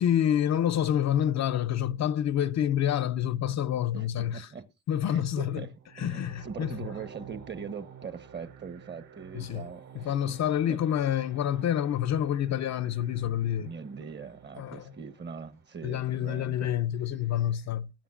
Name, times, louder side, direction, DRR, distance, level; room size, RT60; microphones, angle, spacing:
voice 1, 0.0-4.5 4.9-5.6 6.0-6.8 9.3-9.6 9.9-13.7 14.0-14.1 14.6-14.8 15.8-17.9, left 10 dB, 60° left, 0.7 m, -28 dB
voice 2, 3.9-4.7 5.1-10.4 10.7-10.8 13.6-16.7, right 6 dB, 35° right, 1.2 m, -42 dB
sound 1, 5.7-15.9, right 8 dB, 75° right, 3.4 m, -51 dB
19.5 x 9.3 x 2.4 m
cardioid pair, 90°, 30 cm